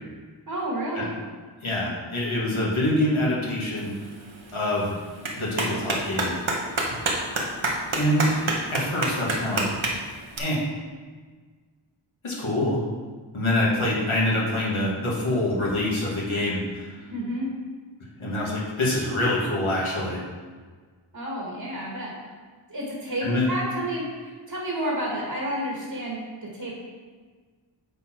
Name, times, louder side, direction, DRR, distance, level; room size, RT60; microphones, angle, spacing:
voice 1, 0.5-1.2 17.1-17.5 21.1-22.1 22.7-26.2 26.5-26.7, right 1 dB, 50° right, -4 dB, 2.0 m, -30 dB
voice 2, 1.6-3.9 4.5-5.0 5.3-6.3 7.9-9.6 10.4-10.6 12.2-12.8 13.3-16.8 18.2-20.2 23.2-23.5, left 1 dB, 85° left, -5 dB, 2.4 m, -25 dB
Clapping, 3.8-10.4, right 2 dB, 80° right, 1.4 m, -29 dB
9.3 x 4.6 x 4.6 m, 1.5 s
wide cardioid pair, 45°, 47 cm